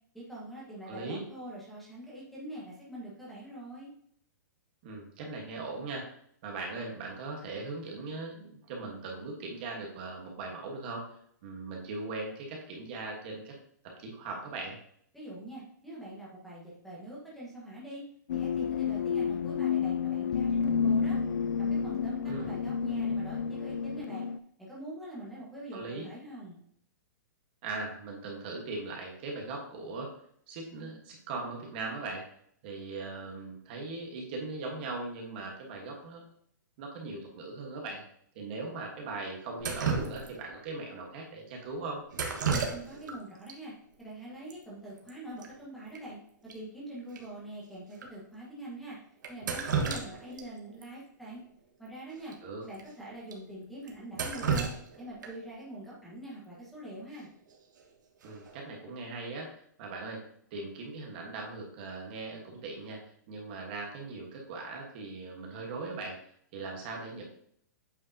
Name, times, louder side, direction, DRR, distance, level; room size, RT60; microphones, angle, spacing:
voice 1, 0.1-3.9 15.1-18.0 18.3-21.2 21.6-24.2 24.6-26.6 42.5-46.2 46.5-49.0 49.3-51.4 51.8-52.4 52.6-57.3, right 1 dB, ahead, -7 dB, 1.4 m, -44 dB
voice 2, 0.8-1.2 4.8-6.1 6.4-11.1 11.4-13.5 14.0-14.8 22.2-22.5 25.7-26.1 27.6-30.1 30.5-32.2 32.6-36.2 36.8-38.0 38.3-42.0 52.4-52.6 58.2-60.2 60.5-63.0 63.3-66.2 66.5-67.2, right 3 dB, 30° right, 0 dB, 1.3 m, -39 dB
sound 1, 18.3-24.4, left 6 dB, 80° left, 0.4 m, -30 dB
Drip, 39.6-40.6 42.1-43.2 43.5-43.6 44.5-44.6 44.9-45.1 45.4-45.5 46.0-46.1 46.5-46.6 47.2-47.3 48.0-48.1 49.2-50.4 50.8-50.9 52.2-52.3 52.7-52.8 53.3-53.4 53.9-55.5 57.5-57.8 58.2-58.6, right 5 dB, 75° right, 1.5 m, -32 dB
8.3 x 5.0 x 2.8 m, 0.65 s
hypercardioid pair, 175°, 10 cm